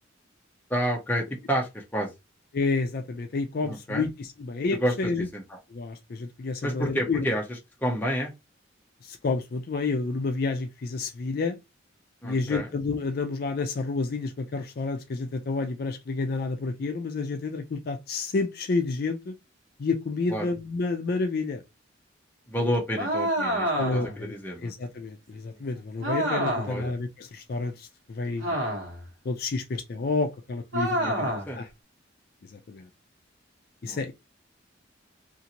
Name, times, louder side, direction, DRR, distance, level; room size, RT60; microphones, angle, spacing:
voice 1, 0.7-2.1 3.6-4.1 4.7-5.6 6.6-8.3 12.2-12.7 20.3-20.5 22.5-24.7 26.7-26.9 30.9-31.6 33.8-34.1, equal, 10° left, 0.7 m, -30 dB
voice 2, 2.5-5.3 5.7-7.3 9.0-11.6 12.2-19.3 19.8-21.6 23.8-24.4 24.6-28.6 29.3-31.7 32.7-32.9 33.8-34.1, left 3 dB, 50° left, 0.4 m, -30 dB
sound 1, 23.0-24.2 26.0-26.8 28.4-29.1 30.7-31.5, right 1 dB, 80° right, 1.2 m, -28 dB
2.7 x 2.5 x 2.8 m
head